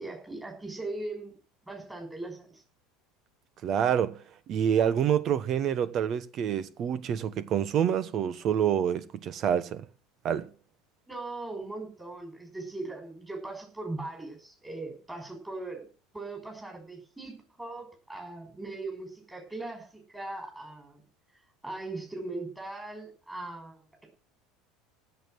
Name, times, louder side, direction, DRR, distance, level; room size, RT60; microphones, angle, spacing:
voice 1, 0.0-1.4 1.7-2.6 11.1-15.9 16.1-21.0 21.6-24.1, right 2 dB, 10° right, 5.7 m, -39 dB
voice 2, 3.6-4.2 4.5-9.8 10.2-10.5, right 9 dB, 45° right, 1.3 m, -27 dB
16.0 x 7.2 x 6.4 m
figure-of-eight pair, 70°, 0 cm